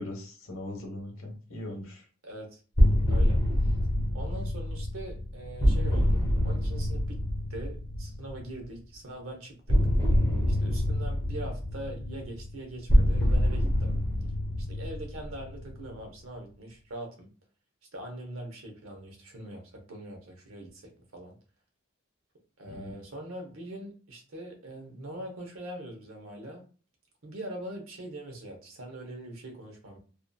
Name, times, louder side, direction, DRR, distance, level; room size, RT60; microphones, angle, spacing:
voice 1, 0.0-2.0 22.7-22.8, left 1 dB, 80° left, 2 dB, 0.9 m, -39 dB
voice 2, 2.2-2.6 3.1-3.4 4.1-7.2 7.5-9.8 10.5-14.0 14.7-17.3 17.9-21.3 22.6-26.6 27.2-30.0, right 1 dB, 90° right, 2 dB, 0.9 m, -42 dB
sound 1, 2.8-8.5 9.7-16.0, equal, 20° left, 0.9 m, -26 dB
2.7 x 2.4 x 2.2 m, 0.38 s
head